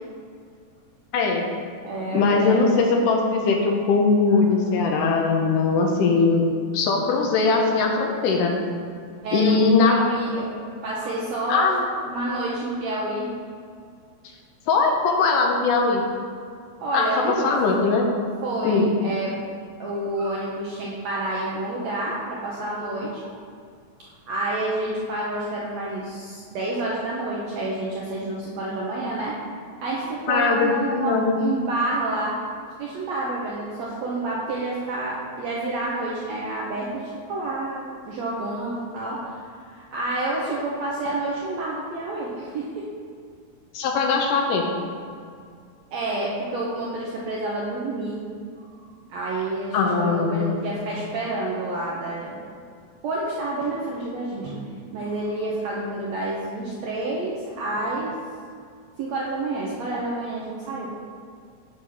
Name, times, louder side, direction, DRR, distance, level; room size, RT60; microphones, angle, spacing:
voice 1, 1.1-1.4 2.1-6.5 6.7-8.5 9.3-10.0 11.5-11.8 14.7-16.0 16.9-17.1 17.4-18.1 18.6-18.9 30.3-31.4 43.7-44.6 49.7-50.6, left 4 dB, 75° left, 1 dB, 2.2 m, -20 dB
voice 2, 1.8-2.6 4.3-4.7 5.4-5.5 9.2-10.5 10.8-11.7 12.1-13.4 16.8-17.5 18.4-19.4 19.8-23.1 24.3-29.4 29.8-32.4 32.8-39.4 39.7-42.9 45.9-48.2 49.1-52.6 53.0-54.6 54.9-58.1 59.0-60.9, right 2 dB, 75° right, -5 dB, 1.6 m, -29 dB
7.9 x 3.5 x 6.0 m, 2.2 s
omnidirectional pair, 4.0 m